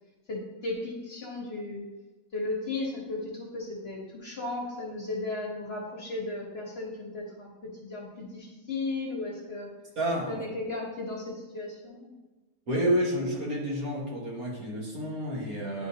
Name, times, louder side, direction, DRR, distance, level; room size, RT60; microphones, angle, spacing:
voice 1, 0.3-1.9 2.3-7.5 7.8-9.7 10.3-12.1, left 2 dB, 45° left, -2 dB, 1.1 m, -35 dB
voice 2, 10.0-10.4 12.7-15.9, equal, 55° right, -4 dB, 2.0 m, -29 dB
10.0 x 4.1 x 2.8 m, 1.2 s
omnidirectional pair, 1.8 m